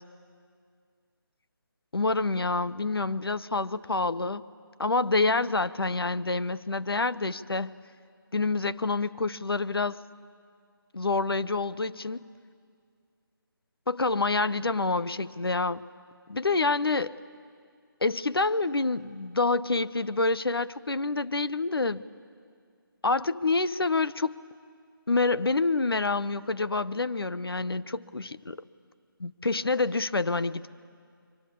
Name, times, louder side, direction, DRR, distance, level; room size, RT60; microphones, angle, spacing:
voice 1, 1.9-4.4 4.8-7.8 8.3-10.0 10.9-12.2 13.9-15.8 16.3-17.1 18.0-22.0 23.0-24.4 25.1-28.6 29.2-30.7, left 3 dB, 85° left, 15 dB, 0.8 m, -27 dB
27.5 x 23.5 x 8.5 m, 2.2 s
figure-of-eight pair, 155°, 12 cm